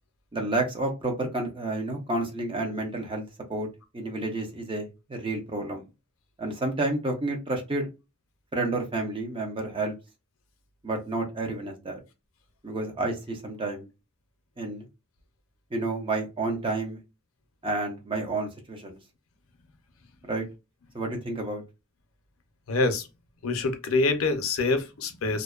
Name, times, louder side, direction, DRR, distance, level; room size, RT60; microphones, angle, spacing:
voice 1, 0.3-3.7 3.9-5.8 6.4-7.9 8.5-9.9 10.8-12.0 12.6-13.9 14.6-14.8 15.7-17.0 17.6-19.0 20.3-20.4 20.9-21.6, right 2 dB, 25° right, 0.7 m, -30 dB
voice 2, 22.7-23.1 23.4-25.4, left 3 dB, 90° left, 0.6 m, -25 dB
2.5 x 2.1 x 2.3 m
head